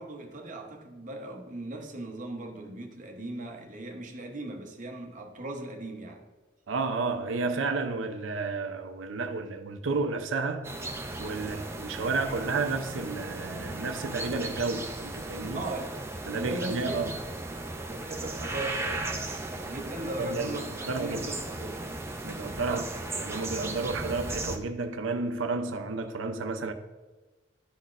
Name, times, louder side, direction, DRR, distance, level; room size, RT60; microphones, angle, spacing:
voice 1, 0.0-6.2 11.4-11.7 15.5-16.0 16.3-17.1 17.9-22.0 22.6-22.8, right 2 dB, 40° right, 0.8 m, -38 dB
voice 2, 6.7-10.7 11.2-15.7 16.3-17.1 20.2-21.2 22.2-22.9 23.1-26.7, right 3 dB, 80° right, 0.5 m, -31 dB
sound 1, 10.6-24.6, right 2 dB, 15° right, 0.5 m, -36 dB
11.5 x 4.1 x 2.4 m
head